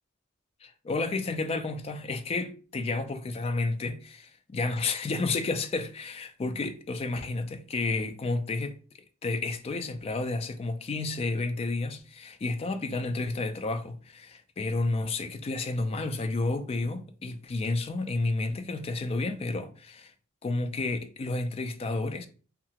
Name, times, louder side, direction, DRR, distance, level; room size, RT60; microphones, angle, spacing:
voice 1, 0.6-8.8 9.2-20.1 20.4-22.3, left 3 dB, 30° left, 0.3 m, -31 dB
2.8 x 2.3 x 2.8 m
head